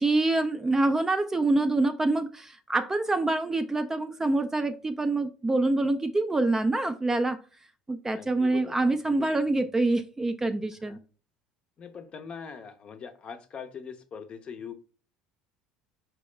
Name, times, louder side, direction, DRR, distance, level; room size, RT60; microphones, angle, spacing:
voice 1, 0.0-7.4 7.9-11.0, right 2 dB, 15° right, 0.3 m, -26 dB
voice 2, 8.1-9.4 10.9-11.0 11.8-14.7, left 6 dB, 40° left, 0.6 m, -42 dB
4.6 x 2.0 x 3.1 m
hypercardioid pair, 80°, 3 cm